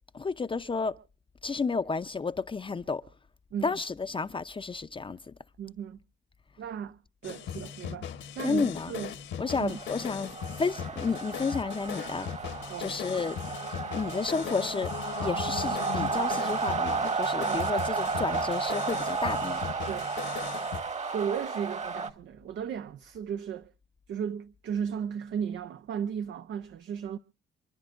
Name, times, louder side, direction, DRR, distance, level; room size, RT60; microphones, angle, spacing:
voice 1, 0.1-1.0 1.4-3.0 3.6-5.3 8.4-8.9 9.4-12.5 12.8-13.4 13.9-19.6, left 4 dB, 25° left, 0.7 m, -31 dB
voice 2, 5.6-6.0 6.6-8.1 8.3-9.1 9.6-9.8 10.2-10.3 12.7-13.0 17.4-17.7 19.9-20.1 21.1-23.7 24.1-27.2, right 8 dB, 65° right, 0.8 m, -35 dB
sound 1, 7.2-20.8, left 8 dB, 70° left, 1.4 m, -39 dB
sound 2, 9.4-22.1, right 5 dB, 35° right, 1.6 m, -33 dB
sound 3, 13.0-18.1, left 12 dB, 85° left, 1.4 m, -44 dB
28.0 x 10.5 x 2.6 m
cardioid pair, 90°, 20 cm